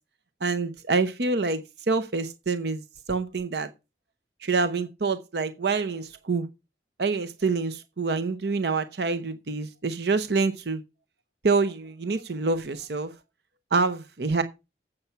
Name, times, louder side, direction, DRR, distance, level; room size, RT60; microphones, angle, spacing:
voice 1, 0.4-3.7 4.4-6.5 7.0-10.8 11.4-13.1 13.7-14.4, right 4 dB, 65° right, 0.7 m, -26 dB
8.3 x 6.8 x 5.6 m
head